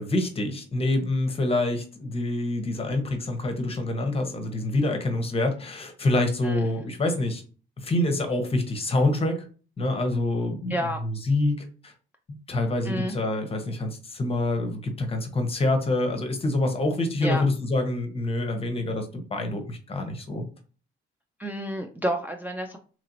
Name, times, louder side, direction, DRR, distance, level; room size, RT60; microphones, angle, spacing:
voice 1, 0.0-7.4 7.8-9.4 9.8-11.9 12.3-20.4, left 2 dB, 30° left, 5 dB, 0.8 m, -26 dB
voice 2, 10.7-11.0 12.9-13.2 17.2-17.5 21.4-22.8, equal, 10° right, 2 dB, 0.3 m, -30 dB
2.9 x 2.7 x 2.6 m, 0.38 s
cardioid pair, 90°, 20 cm